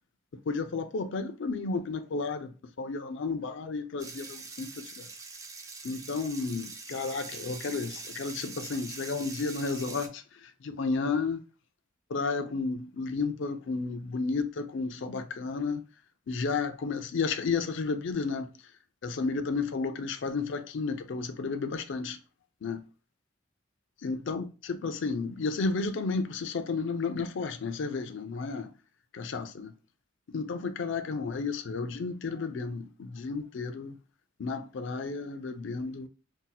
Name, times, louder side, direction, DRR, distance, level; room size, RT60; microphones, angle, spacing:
voice 1, 0.5-5.1 5.8-11.4 12.1-15.8 16.3-18.5 19.0-22.2 22.6-22.8 24.0-28.7 29.1-29.7 30.3-34.0 34.4-36.1, left 4 dB, 65° left, 0.4 m, -32 dB
sound 1, 4.0-10.1, right 4 dB, 15° right, 0.4 m, -43 dB
2.7 x 2.1 x 3.9 m
head